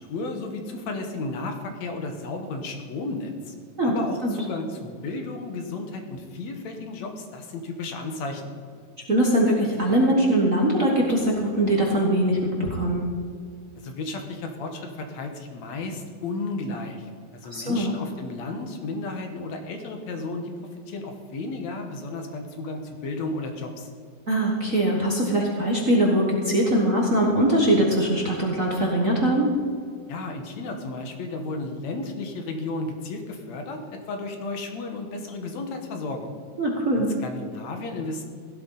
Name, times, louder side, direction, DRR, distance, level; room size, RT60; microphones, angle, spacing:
voice 1, 0.1-3.5 3.8-8.5 13.8-20.5 20.9-23.9 30.1-36.4 36.9-38.2, left 3 dB, 70° left, 5 dB, 2.4 m, -33 dB
voice 2, 9.1-13.0 17.5-17.9 24.3-29.5 36.6-37.1, right 1 dB, 40° right, -2 dB, 1.3 m, -22 dB
16.0 x 12.5 x 4.0 m, 2.1 s
omnidirectional pair, 3.4 m